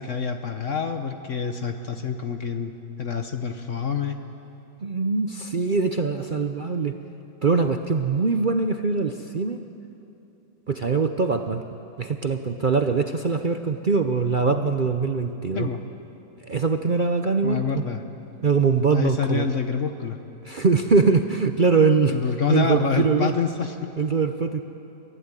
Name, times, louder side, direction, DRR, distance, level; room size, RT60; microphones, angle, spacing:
voice 1, 0.0-2.7 3.0-4.2 15.5-15.8 17.4-18.0 18.9-20.2 22.1-23.9, left 6 dB, 50° left, 6 dB, 1.2 m, -27 dB
voice 2, 4.8-7.0 7.4-9.6 10.7-11.6 12.0-15.7 16.4-17.8 18.4-19.5 20.4-22.2 22.5-23.3 24.0-24.6, right 4 dB, 55° right, 7 dB, 0.5 m, -22 dB
24.5 x 15.5 x 9.9 m, 2.8 s
omnidirectional pair, 1.9 m